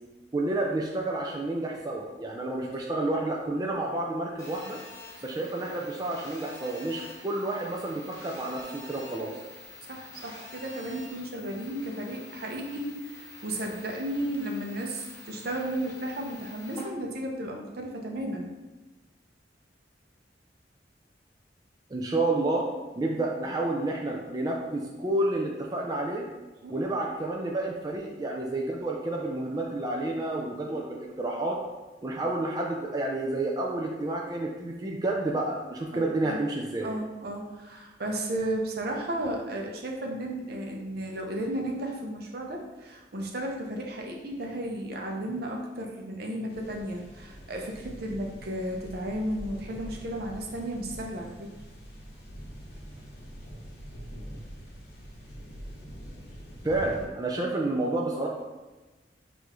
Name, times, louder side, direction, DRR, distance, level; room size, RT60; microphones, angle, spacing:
voice 1, 0.3-4.8 5.2-9.3 21.9-22.7 23.0-26.3 26.7-31.6 32.0-36.9 56.6-58.3, right 2 dB, 20° right, -1 dB, 0.4 m, -30 dB
Telephone, 4.4-16.8, left 2 dB, 20° left, 1.1 m, -47 dB
voice 2, 9.9-18.5 26.6-26.7 35.9-36.4 36.8-51.5, right 1 dB, 60° right, 1 dB, 0.7 m, -34 dB
sound 1, 46.5-57.1, equal, 60° left, 1.0 m, -44 dB
6.6 x 2.6 x 3.0 m, 1.2 s
head